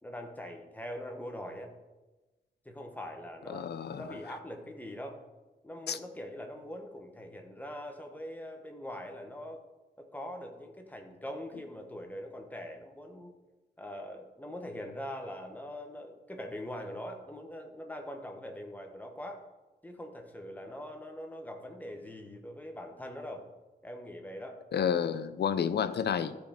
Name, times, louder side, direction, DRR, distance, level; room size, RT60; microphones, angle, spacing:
voice 1, 0.0-1.7 2.6-3.7 4.0-5.2 5.6-9.6 10.0-13.3 13.8-19.4 19.8-23.5 23.8-24.6, left 1 dB, 10° left, 1.1 m, -42 dB
voice 2, 3.5-4.0 5.9-6.0 24.7-26.4, left 8 dB, 85° left, 0.6 m, -30 dB
13.5 x 5.3 x 5.2 m
wide cardioid pair, 175°, 17 cm